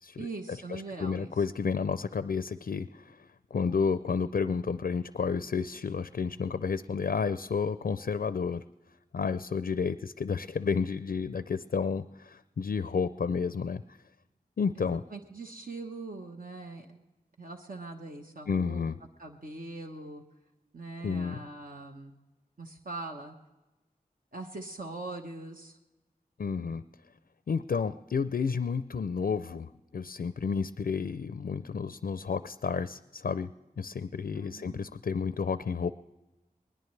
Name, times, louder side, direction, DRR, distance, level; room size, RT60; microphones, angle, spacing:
voice 1, 0.2-1.3 14.8-17.0 17.4-18.9 19.2-20.2 20.7-22.2 22.6-23.3 24.3-25.8 34.3-34.8, right 3 dB, 65° right, 2 dB, 1.1 m, -42 dB
voice 2, 0.7-3.2 3.5-8.6 9.1-13.8 14.6-15.0 18.5-19.0 21.0-21.4 26.4-26.8 27.5-33.5 33.8-35.9, left 5 dB, 70° left, 13 dB, 0.4 m, -31 dB
20.5 x 20.0 x 3.2 m, 1.1 s
wide cardioid pair, 45°, 16 cm